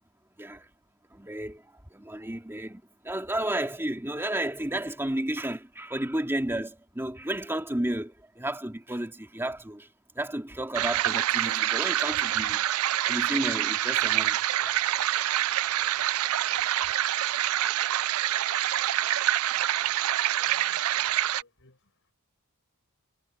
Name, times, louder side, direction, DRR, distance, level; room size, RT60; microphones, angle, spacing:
voice 1, 0.4-0.7 1.1-9.9 10.1-14.8, right 1 dB, 10° right, 2.3 m, -32 dB
sound 1, 10.7-21.4, right 13 dB, 70° right, 0.4 m, -26 dB
voice 2, 19.5-20.0 20.4-21.8, left 2 dB, 60° left, 6.7 m, -62 dB
head